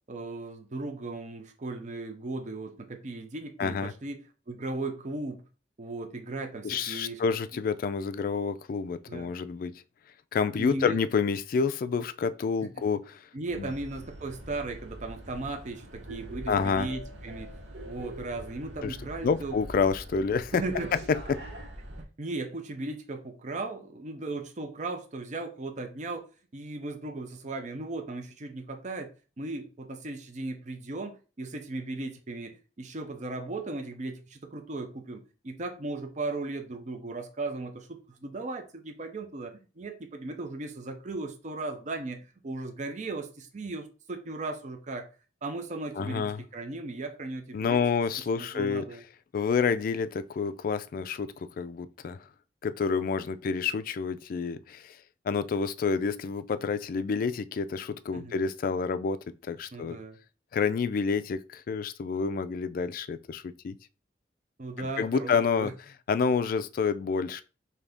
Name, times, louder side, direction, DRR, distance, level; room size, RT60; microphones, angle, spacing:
voice 1, 0.1-5.4 5.8-7.2 9.1-9.3 10.6-11.0 12.8-12.9 13.3-17.5 17.9-19.6 20.5-20.9 22.0-26.2 26.5-29.1 29.4-45.1 45.4-47.8 48.4-49.0 58.1-58.4 59.7-60.2 64.6-65.7, right 2 dB, 45° right, 0.6 m, -37 dB
voice 2, 3.6-3.9 6.6-9.7 10.3-13.0 13.6-13.7 16.5-16.9 18.8-19.0 19.2-20.6 21.3-21.4 46.0-46.4 47.5-48.8 49.3-52.2 52.6-55.0 55.3-60.0 60.5-63.8 64.8-65.7 66.1-67.4, left 5 dB, 55° left, 0.3 m, -28 dB
sound 1, 13.5-22.0, right 1 dB, 75° right, 0.8 m, -43 dB
3.8 x 2.8 x 3.4 m
head